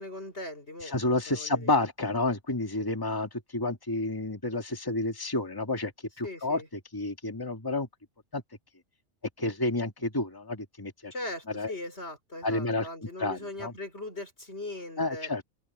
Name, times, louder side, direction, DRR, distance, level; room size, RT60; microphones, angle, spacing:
voice 1, 0.0-1.7 6.2-6.7 11.1-15.3, left 2 dB, 60° left, 5.5 m, -40 dB
voice 2, 0.8-5.9 6.2-6.6 6.9-7.9 8.3-8.4 9.4-11.1 11.6-11.7 12.4-12.9 13.2-13.7 15.0-15.4, left 2 dB, 20° left, 2.0 m, -30 dB
omnidirectional pair, 1.2 m